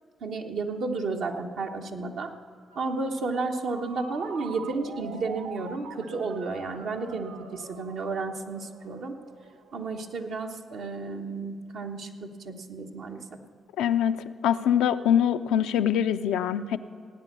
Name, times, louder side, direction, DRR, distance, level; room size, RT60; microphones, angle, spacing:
voice 1, 0.2-2.3 2.7-9.1 9.7-13.2, right 3 dB, 75° right, 2 dB, 1.2 m, -32 dB
Ringtone, 2.7-10.2, right 5 dB, 90° right, 0.7 m, -45 dB
voice 2, 13.8-16.8, left 9 dB, 85° left, 10 dB, 0.4 m, -24 dB
16.5 x 9.3 x 6.8 m, 2.2 s
supercardioid pair, 55°, 0 cm